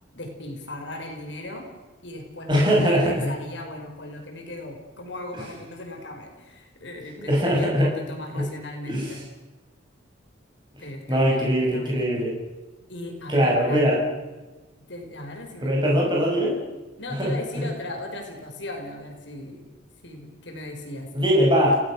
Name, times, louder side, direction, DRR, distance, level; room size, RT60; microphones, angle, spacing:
voice 1, 0.1-1.7 2.0-9.2 10.8-12.1 12.9-13.8 14.9-15.7 17.0-19.6 20.0-21.1, left 1 dB, 65° left, 2 dB, 5.1 m, -37 dB
voice 2, 2.5-3.3 7.3-7.9 8.3-8.4 8.9-9.1 11.1-12.3 13.3-14.0 15.6-16.6 17.2-17.7 21.1-21.8, equal, 25° right, -3 dB, 6.2 m, -21 dB
30.0 x 17.5 x 6.3 m, 1.2 s
head